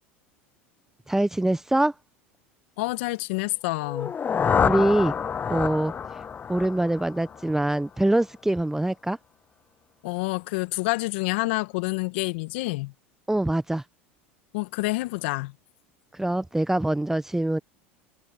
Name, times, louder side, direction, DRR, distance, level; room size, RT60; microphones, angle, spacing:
voice 1, 1.1-1.9 4.6-5.1 5.5-5.9 6.5-9.2 13.3-13.8 16.1-17.6, right 1 dB, 5° right, 0.9 m, -24 dB
voice 2, 2.8-4.1 10.0-12.9 14.5-15.5, left 23 dB, 70° left, 1.8 m, -28 dB
sound 1, 3.8-7.8, left 7 dB, 25° left, 0.6 m, -27 dB
hypercardioid pair, 85°, 6 cm